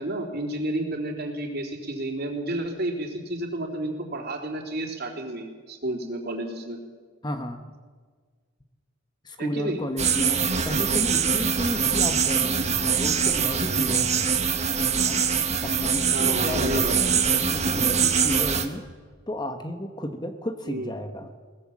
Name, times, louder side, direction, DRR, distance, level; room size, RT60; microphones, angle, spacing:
voice 1, 0.0-6.8 9.4-9.8 16.1-17.0 20.7-20.9, right 1 dB, 50° right, 2 dB, 3.8 m, -31 dB
voice 2, 7.2-7.6 9.2-14.4 15.0-15.3 15.6-18.9 19.3-21.3, left 1 dB, 20° left, 7 dB, 1.2 m, -33 dB
sound 1, 10.0-18.7, right 6 dB, 35° right, 1.5 m, -23 dB
22.0 x 19.5 x 7.4 m, 1.5 s
head